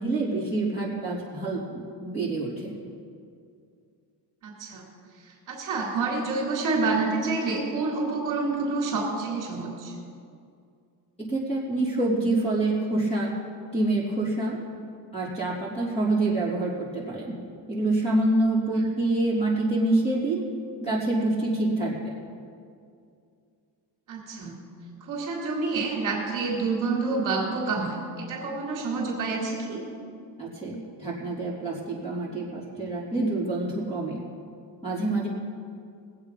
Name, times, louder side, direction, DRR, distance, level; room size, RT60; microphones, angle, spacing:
voice 1, 0.0-2.7 11.2-13.4 13.7-14.6 15.1-17.3 17.7-20.4 20.8-22.0 30.4-34.2 34.8-35.3, right 2 dB, 15° left, -5 dB, 3.3 m, -26 dB
voice 2, 4.4-4.8 5.2-9.9 18.7-18.8 24.1-24.5 25.0-29.8, right 3 dB, 50° right, -1 dB, 2.8 m, -28 dB
20.5 x 8.1 x 5.4 m, 2.4 s
cardioid pair, 175°, 42 cm